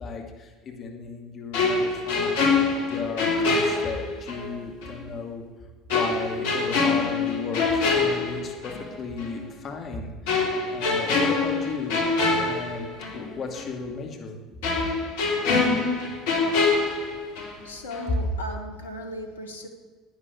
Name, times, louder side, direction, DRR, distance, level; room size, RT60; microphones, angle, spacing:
voice 1, 0.0-2.4 2.7-5.4 5.9-12.1 12.4-14.4, left 4 dB, 40° left, 2 dB, 2.7 m, -35 dB
sound 1, 1.5-4.5 4.8-4.9 5.9-8.9 9.2-9.4 10.3-13.3 13.5-13.7 14.6-17.6 17.9-18.1, left 4 dB, 70° left, 3.4 m, -25 dB
voice 2, 17.6-19.7, equal, 85° left, 4 dB, 1.5 m, -37 dB
11.5 x 9.6 x 8.8 m, 1.4 s
hypercardioid pair, 70°, 0 cm